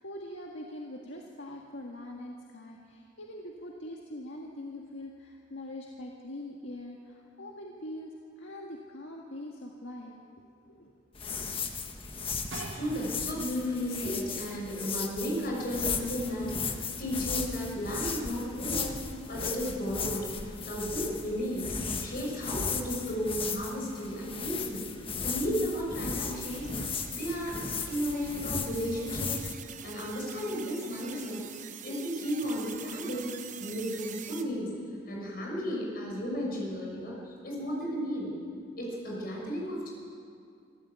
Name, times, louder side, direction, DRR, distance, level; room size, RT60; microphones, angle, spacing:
voice 1, 0.0-10.1 10.7-10.9, left 1 dB, 70° left, -1 dB, 1.8 m, -43 dB
sound 1, 11.1-29.5, left 5 dB, 30° left, 1.4 m, -36 dB
sound 2, 12.5-13.8 14.5-14.6, right 3 dB, 75° right, 2.0 m, -43 dB
voice 2, 12.7-19.0 19.3-21.7 22.0-24.8 25.2-26.7 27.1-27.6 27.9-29.3 29.8-34.8 35.0-38.3 38.8-39.9, equal, 50° left, -2 dB, 6.2 m, -34 dB
sound 3, 26.2-34.4, right 9 dB, 40° right, 1.0 m, -46 dB
25.5 x 14.0 x 8.3 m, 2.4 s
head